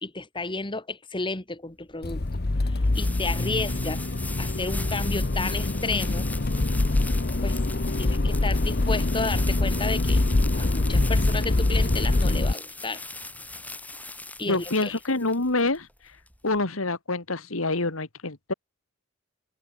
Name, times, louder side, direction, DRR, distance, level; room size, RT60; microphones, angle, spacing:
voice 1, 0.0-2.2 2.6-4.1 4.4-6.3 7.4-7.6 8.0-10.2 10.5-13.0 14.4-15.0, left 3 dB, 25° left, 2.0 m, -32 dB
sound 1, 1.7-16.6, left 2 dB, 10° left, 4.9 m, -40 dB
Accelerating revving vroom, 2.0-12.5, left 2 dB, 50° left, 1.0 m, -24 dB
voice 2, 14.4-15.9 16.4-18.5, left 2 dB, 90° left, 2.5 m, -26 dB
head